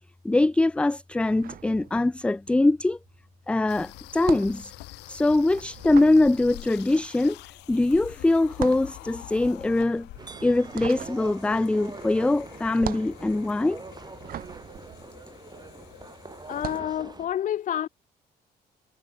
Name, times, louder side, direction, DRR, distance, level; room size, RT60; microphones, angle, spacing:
voice 1, 0.2-3.0 3.5-4.7 5.1-7.4 7.7-10.1 10.4-13.8, left 2 dB, 5° left, 0.4 m, -23 dB
sound 1, 1.2-2.5 2.7-15.9 16.4-17.0, right 12 dB, 60° right, 1.2 m, -40 dB
sound 2, 3.7-16.8, left 20 dB, 90° left, 2.3 m, -46 dB
sound 3, 10.2-17.3, right 4 dB, 25° right, 6.8 m, -44 dB
voice 2, 16.5-17.9, left 10 dB, 50° left, 0.7 m, -29 dB
cardioid pair, 110°, 17 cm